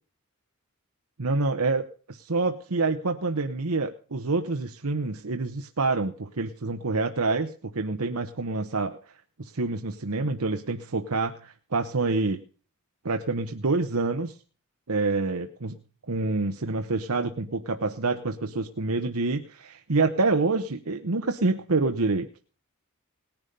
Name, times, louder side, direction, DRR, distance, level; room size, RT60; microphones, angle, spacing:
voice 1, 1.2-9.0 9.4-12.4 13.0-14.4 14.9-15.8 16.1-22.3, right 3 dB, 80° right, 6 dB, 1.0 m, -27 dB
19.0 x 10.5 x 5.3 m, 0.40 s
head